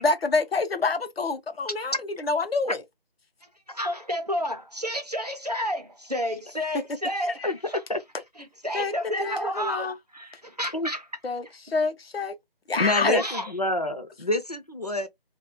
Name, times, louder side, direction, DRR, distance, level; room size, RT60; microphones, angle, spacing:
voice 1, 0.0-2.8 7.4-7.5 8.7-8.9 9.2-9.9 11.2-12.3 12.7-13.2, left 3 dB, 75° left, 0.7 m, -27 dB
voice 2, 3.7-7.8 8.6-11.1 13.1-13.5, equal, 45° right, 0.4 m, -31 dB
voice 3, 12.8-15.1, left 1 dB, 45° left, 0.4 m, -27 dB
2.2 x 2.1 x 2.6 m
figure-of-eight pair, 175°, 30 cm